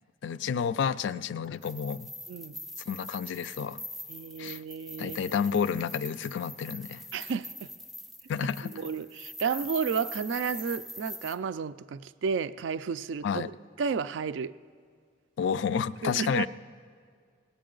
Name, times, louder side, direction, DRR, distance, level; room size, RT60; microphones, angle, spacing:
voice 1, 0.2-2.1 2.9-3.8 4.4-4.6 5.0-7.0 8.3-8.7 13.2-13.5 15.4-16.5, left 7 dB, 70° left, 0.3 m, -30 dB
sound 1, 1.5-11.4, left 1 dB, ahead, 0.5 m, -43 dB
voice 2, 2.3-2.7 4.1-5.3 7.1-7.7 8.7-13.5 13.8-14.5 16.0-16.5, right 6 dB, 70° right, 0.3 m, -32 dB
19.0 x 8.6 x 3.8 m
head